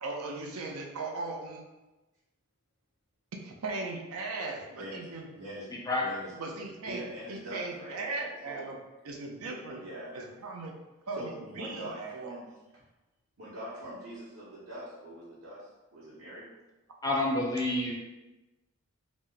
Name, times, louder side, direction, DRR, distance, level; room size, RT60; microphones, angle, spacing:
voice 1, 0.0-1.6 3.4-5.3 6.4-7.0 7.3-8.8 9.0-9.8 10.1-10.7 11.1-12.3, right 3 dB, 85° right, 1 dB, 0.5 m, -38 dB
voice 2, 4.8-6.3 6.8-8.0 8.5-8.7 9.8-10.1 11.1-12.8 13.4-16.5, right 1 dB, 65° right, -10 dB, 0.9 m, -43 dB
voice 3, 17.0-17.9, left 1 dB, 15° left, -2 dB, 0.4 m, -28 dB
3.0 x 2.1 x 3.8 m, 1.1 s
head